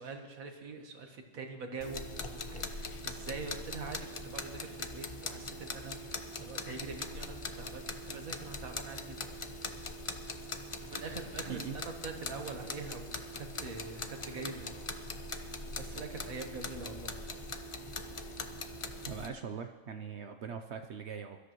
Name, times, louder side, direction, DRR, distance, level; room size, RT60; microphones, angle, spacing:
voice 1, 0.0-9.2 10.8-14.7 15.3-15.5 15.8-17.1, right 4 dB, 75° right, 4 dB, 1.8 m, -44 dB
sound 1, 1.8-19.3, left 2 dB, 35° left, 0.5 m, -41 dB
voice 2, 11.4-11.8 19.1-21.4, right 7 dB, 60° right, 7 dB, 0.8 m, -41 dB
22.5 x 13.5 x 3.1 m, 1.3 s
omnidirectional pair, 1.5 m